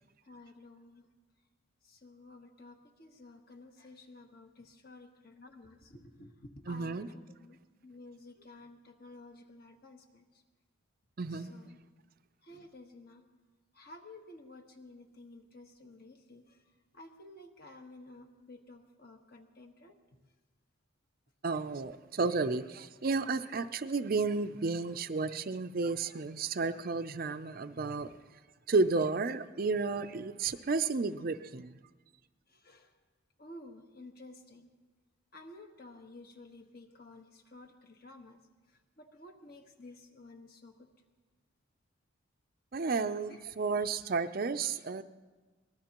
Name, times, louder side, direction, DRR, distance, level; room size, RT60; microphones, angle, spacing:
voice 1, 0.2-1.1 1.8-10.4 11.3-11.8 12.4-13.3 13.7-16.6 16.9-19.9 32.5-32.9 33.4-34.7 35.3-38.4 38.7-40.9 43.3-43.5, left 2 dB, 50° left, 4 dB, 1.3 m, -53 dB
voice 2, 6.7-7.1 11.2-11.5 21.4-28.1 28.7-31.7 42.7-45.0, right 4 dB, 45° right, 11 dB, 0.5 m, -32 dB
23.5 x 19.0 x 3.0 m, 1.3 s
head